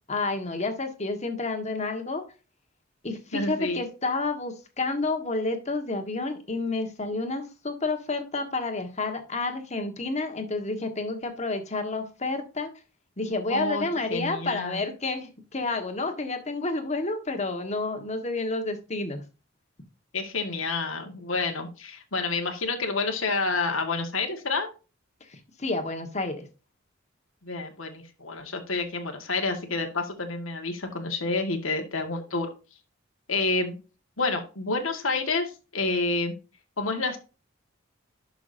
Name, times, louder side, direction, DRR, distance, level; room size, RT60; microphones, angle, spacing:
voice 1, 0.1-2.2 3.0-12.7 13.2-19.2 25.6-26.5, left 3 dB, 35° left, 6 dB, 1.6 m, -30 dB
voice 2, 3.3-3.8 13.5-14.8 20.1-24.7 27.4-32.5 33.3-33.8 34.2-36.3 36.8-37.2, left 3 dB, 90° left, 4 dB, 1.8 m, -29 dB
11.5 x 6.0 x 2.7 m, 0.31 s
head